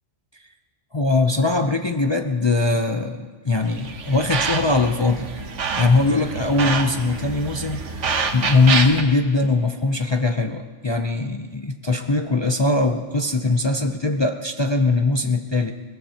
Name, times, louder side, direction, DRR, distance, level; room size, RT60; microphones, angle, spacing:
voice 1, 0.9-5.3 5.7-15.7, left 3 dB, 35° left, 5 dB, 0.5 m, -21 dB
sound 1, 3.7-9.0, right 5 dB, 75° right, 1.4 m, -27 dB
22.0 x 19.0 x 2.9 m, 1.5 s
omnidirectional pair, 1.3 m